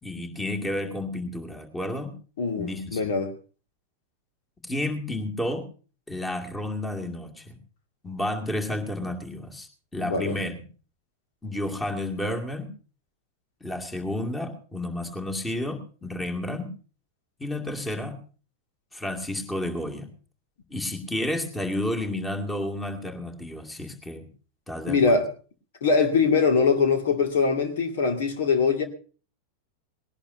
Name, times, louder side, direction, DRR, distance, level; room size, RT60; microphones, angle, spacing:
voice 1, 0.0-2.1 2.6-3.1 4.6-5.7 6.1-7.6 8.0-10.6 11.4-12.7 13.6-16.7 17.4-18.2 18.9-20.1 20.7-24.3 24.7-25.2, left 1 dB, 10° left, 2.3 m, -31 dB
voice 2, 2.4-3.3 10.0-10.4 24.9-25.3 25.8-28.8, left 5 dB, 60° left, 2.2 m, -22 dB
20.0 x 18.0 x 2.7 m
figure-of-eight pair, 90°, 0 cm